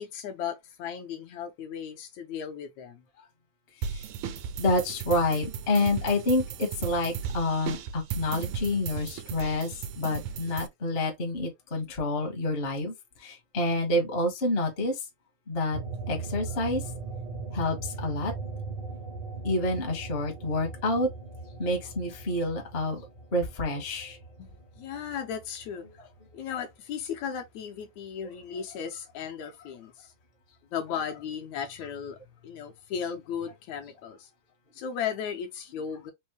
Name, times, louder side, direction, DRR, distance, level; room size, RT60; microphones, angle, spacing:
voice 1, 0.0-3.0 24.4-24.5 24.8-25.9 26.3-30.1 30.7-32.2 32.4-34.3 34.7-36.1, left 7 dB, 75° left, 1.9 m, -36 dB
sound 1, 3.8-10.7, right 7 dB, 80° right, 1.7 m, -36 dB
voice 2, 4.6-12.9 13.2-15.0 15.5-15.8 16.1-16.8 17.5-18.3 19.4-21.1 21.6-23.0 23.3-24.2, left 2 dB, 40° left, 0.8 m, -28 dB
sound 2, 15.7-26.6 27.0-28.4, right 3 dB, 45° right, 0.7 m, -39 dB
5.3 x 2.1 x 3.1 m
omnidirectional pair, 3.5 m